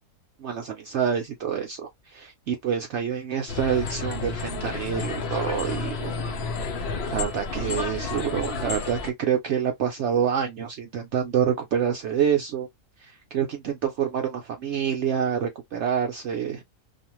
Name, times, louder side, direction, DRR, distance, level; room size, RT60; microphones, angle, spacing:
voice 1, 0.4-6.3 7.1-12.7 13.0-16.6, right 8 dB, 65° right, 0.7 m, -27 dB
sound 1, 3.5-9.1, left 4 dB, 60° left, 0.8 m, -31 dB
2.5 x 2.4 x 2.9 m
omnidirectional pair, 1.5 m